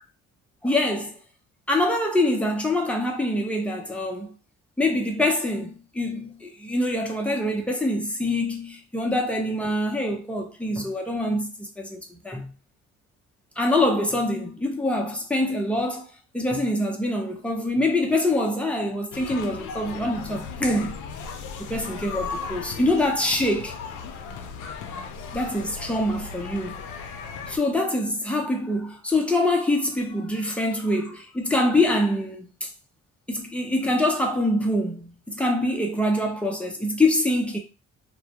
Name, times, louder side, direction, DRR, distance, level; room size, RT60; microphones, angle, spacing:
voice 1, 0.6-1.2 1.7-4.3 4.8-12.5 13.6-21.0 21.6-23.8 25.3-26.8 27.5-32.7 33.3-37.6, left 1 dB, 5° left, 0.6 m, -25 dB
sound 1, 19.1-27.6, left 5 dB, 75° left, 0.5 m, -36 dB
2.2 x 2.1 x 2.8 m
cardioid pair, 90°, 30 cm